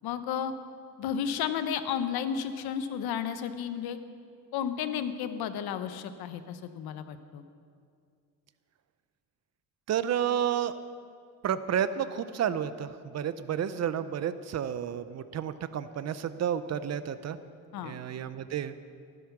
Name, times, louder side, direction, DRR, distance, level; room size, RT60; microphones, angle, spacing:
voice 1, 0.0-0.5 1.0-4.0 4.5-7.4 17.7-18.0, left 8 dB, 90° left, 11 dB, 1.0 m, -32 dB
voice 2, 9.9-10.8 11.4-17.4 17.8-18.7, right 9 dB, 45° right, 13 dB, 0.6 m, -31 dB
14.5 x 12.5 x 5.9 m, 2.3 s
cardioid pair, 140°, 36 cm